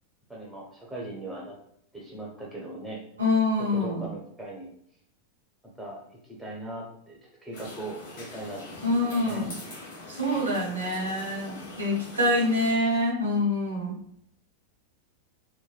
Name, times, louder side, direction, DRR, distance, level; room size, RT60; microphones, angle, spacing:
voice 1, 0.3-1.6 1.9-3.0 3.7-4.7 5.8-9.5, right 1 dB, 5° right, -4 dB, 0.9 m, -39 dB
voice 2, 3.2-4.0 8.8-9.5 10.1-14.0, left 1 dB, 75° right, -4 dB, 1.0 m, -26 dB
sound 1, 7.5-12.7, left 2 dB, 55° left, 1.0 m, -43 dB
3.1 x 2.1 x 2.2 m, 0.67 s
figure-of-eight pair, 90°, 0 cm